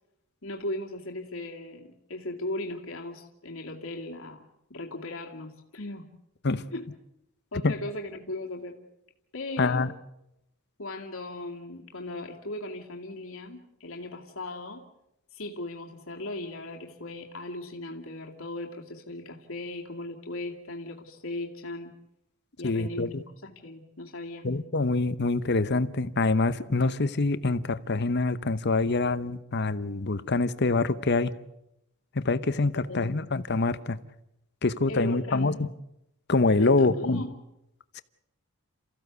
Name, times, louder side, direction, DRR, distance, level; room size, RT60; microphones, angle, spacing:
voice 1, 0.4-6.1 6.7-6.9 7.5-8.8 9.3-9.9 10.8-14.8 15.3-21.9 22.6-23.1 23.4-24.5 32.9-33.1 34.9-35.7 36.6-37.3, left 2 dB, 65° left, 1 dB, 2.3 m, -37 dB
voice 2, 9.6-9.9 22.6-23.2 24.4-31.3 32.1-34.0 34.6-35.7 36.3-37.2, left 3 dB, 50° left, 14 dB, 0.9 m, -25 dB
28.5 x 15.0 x 8.1 m, 0.86 s
head